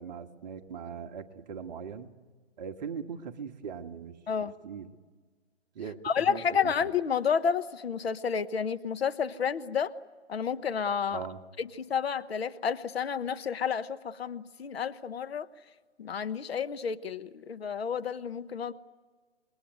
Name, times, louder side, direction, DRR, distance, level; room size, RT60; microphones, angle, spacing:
voice 1, 0.0-2.1 2.6-4.2 4.6-4.9 5.7-6.7 11.1-11.4, right 7 dB, 40° right, 6 dB, 1.4 m, -40 dB
voice 2, 6.0-9.9 10.3-11.3 11.6-15.5 16.0-18.7, left 7 dB, 60° left, 12 dB, 1.1 m, -30 dB
27.0 x 21.0 x 9.3 m, 1.5 s
hypercardioid pair, 145°, 35 cm